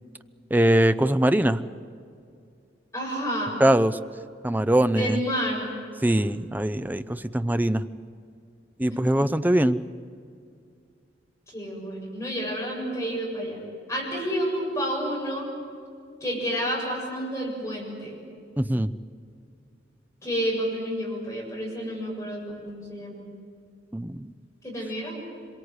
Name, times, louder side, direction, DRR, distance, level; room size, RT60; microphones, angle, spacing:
voice 1, 0.5-1.6 3.6-4.0 4.4-5.2 6.0-7.9 8.8-9.8 18.6-18.9 23.9-24.3, right 1 dB, 10° right, 11 dB, 0.6 m, -22 dB
voice 2, 2.9-3.5 4.9-5.7 11.5-13.6 13.9-15.5 16.2-18.2 20.2-23.3 24.6-25.2, equal, 15° left, -3 dB, 7.4 m, -30 dB
26.0 x 22.5 x 8.1 m, 2.3 s
head